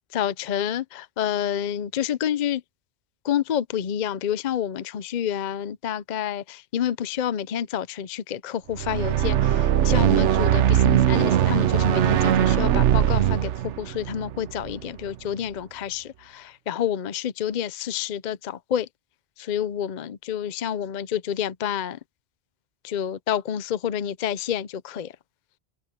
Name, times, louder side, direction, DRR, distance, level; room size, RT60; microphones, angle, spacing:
voice 1, 0.1-2.6 3.2-18.9 19.4-22.0 22.8-25.1, left 9 dB, 50° left, 0.6 m, -28 dB
sound 1, 8.7-15.1, right 11 dB, 85° right, 1.0 m, -21 dB
omnidirectional pair, 1.2 m